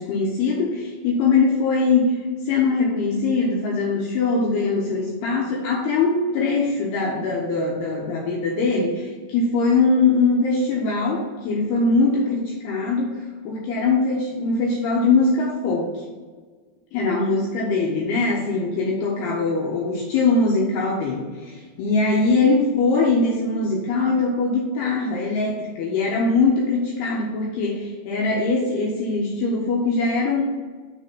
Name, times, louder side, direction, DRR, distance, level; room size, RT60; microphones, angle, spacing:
voice 1, 0.0-13.2 13.4-16.0 16.9-30.4, left 3 dB, 75° left, -3 dB, 2.5 m, -22 dB
6.5 x 3.8 x 5.7 m, 1.5 s
omnidirectional pair, 5.4 m